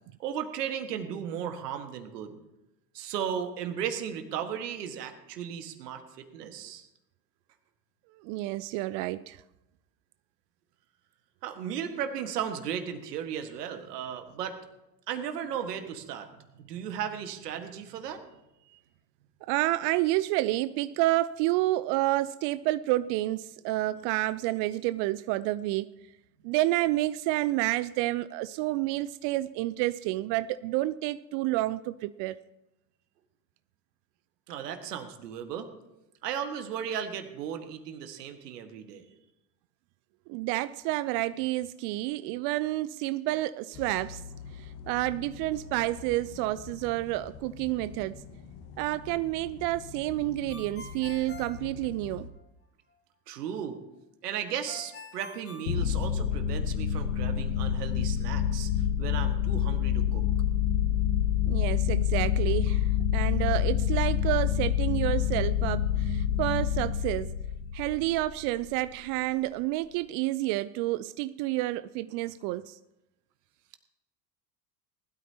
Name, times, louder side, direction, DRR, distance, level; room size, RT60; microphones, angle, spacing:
voice 1, 0.2-2.3 2.9-6.9 11.4-14.6 15.1-18.2 34.5-35.7 36.2-39.1 53.3-53.8 54.2-58.7 59.0-60.2, right 8 dB, 70° right, 6 dB, 1.8 m, -35 dB
voice 2, 8.2-9.4 19.5-25.9 26.4-32.4 40.3-44.2 44.5-48.2 48.8-52.3 61.5-67.3 67.7-72.8, right 17 dB, 45° right, 15 dB, 0.5 m, -29 dB
sound 1, 43.7-52.3, left 6 dB, 50° left, 1.7 m, -45 dB
Ringtone, 50.5-52.4 54.7-56.6, left 3 dB, 25° left, 2.7 m, -46 dB
sound 2, 55.7-68.5, left 9 dB, 80° left, 0.9 m, -27 dB
20.0 x 12.5 x 2.9 m, 0.95 s
hypercardioid pair, 75°, 48 cm